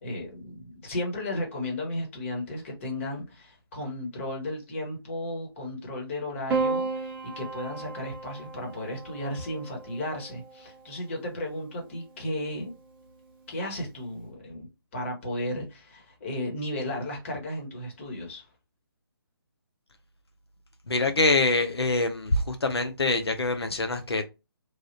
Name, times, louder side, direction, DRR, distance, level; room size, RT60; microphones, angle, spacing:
voice 1, 0.0-12.7 13.5-18.4, left 1 dB, 30° left, 1.3 m, -34 dB
Piano, 6.5-11.0 12.2-12.8, right 3 dB, 10° right, 0.5 m, -34 dB
voice 2, 20.9-24.2, left 2 dB, 85° left, 0.6 m, -25 dB
3.2 x 2.4 x 2.6 m
figure-of-eight pair, 150°, 13 cm